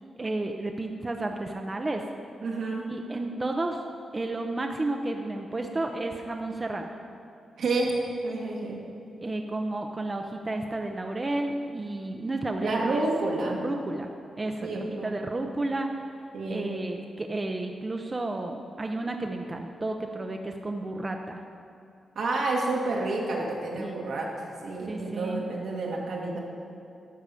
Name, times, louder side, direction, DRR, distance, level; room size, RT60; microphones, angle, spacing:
voice 1, 0.2-2.0 2.9-3.8 4.1-6.9 9.2-13.0 13.6-14.1 14.4-15.9 16.5-21.4 23.8-24.0 24.9-25.4, right 2 dB, 30° right, 3 dB, 0.7 m, -32 dB
voice 2, 2.4-2.9 7.6-8.0 8.2-8.8 12.6-13.6 14.6-15.1 16.3-16.7 22.2-26.4, right 2 dB, 80° right, -2 dB, 1.9 m, -29 dB
12.5 x 4.8 x 6.9 m, 2.6 s
cardioid pair, 65°, 0 cm